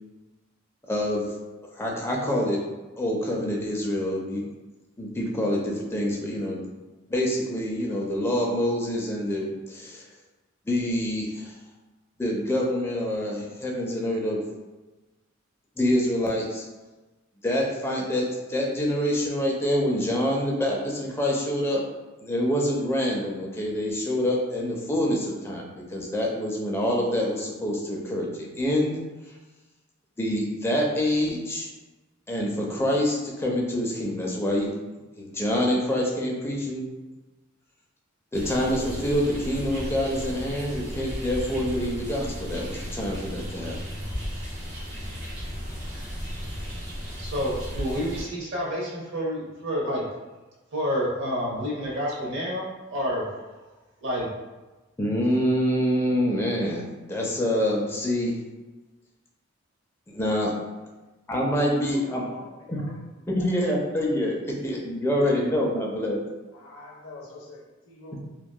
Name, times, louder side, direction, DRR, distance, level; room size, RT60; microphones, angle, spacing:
voice 1, 0.9-1.3 1.7-2.6 3.0-4.5 5.0-6.7 7.1-10.1 10.7-11.5 12.2-14.4 15.8-16.6 17.4-21.8 22.2-28.3 28.6-29.0 30.2-31.7 32.3-34.7 35.2-36.9 38.3-43.8 55.0-58.4 60.1-60.5 61.3-62.2 62.7-62.8 63.3-64.4 64.6-66.2, left 1 dB, 10° left, -2 dB, 0.4 m, -26 dB
sound 1, 38.3-48.2, equal, 35° right, 1.0 m, -35 dB
voice 2, 47.2-50.0 50.7-53.3 54.0-54.3, equal, 60° right, -3 dB, 0.7 m, -29 dB
voice 3, 61.7-63.0 63.4-63.5 64.5-64.7 65.1-65.8 66.5-68.2, left 2 dB, 85° left, -1 dB, 0.6 m, -46 dB
2.7 x 2.2 x 2.2 m, 1.2 s
head